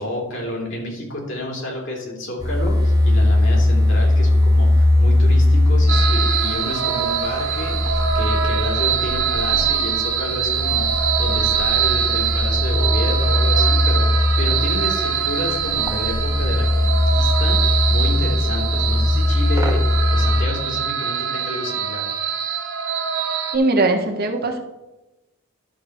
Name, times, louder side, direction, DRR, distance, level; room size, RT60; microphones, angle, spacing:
voice 1, 0.0-10.9 11.2-22.0, left 1 dB, 65° left, -2 dB, 3.1 m, -30 dB
sound 1, 2.4-20.5, left 1 dB, 20° right, 1.0 m, -19 dB
sound 2, 5.9-23.6, right 7 dB, 80° right, 1.3 m, -23 dB
voice 2, 23.5-24.6, right 2 dB, 50° right, 3 dB, 1.4 m, -19 dB
11.5 x 4.0 x 6.5 m, 0.99 s
head